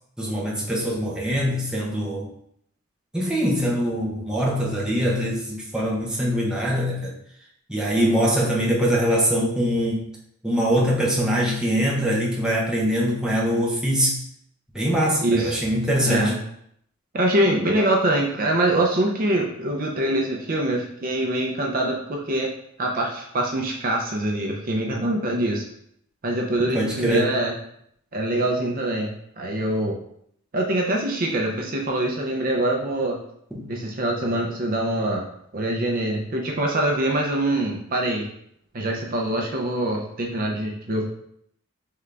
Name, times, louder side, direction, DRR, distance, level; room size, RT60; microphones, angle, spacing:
voice 1, 0.2-2.3 3.1-7.1 7.7-10.0 10.4-14.2 14.7-16.3 26.6-27.4 33.5-33.7, equal, 5° right, -4 dB, 0.7 m, -23 dB
voice 2, 15.2-15.6 16.1-16.4 17.1-22.5 22.8-25.6 26.2-27.5 28.1-30.0 30.5-33.2 33.7-35.2 35.5-38.3 38.7-41.0, right 1 dB, 40° right, 0 dB, 0.5 m, -24 dB
3.8 x 3.5 x 3.3 m, 0.71 s
head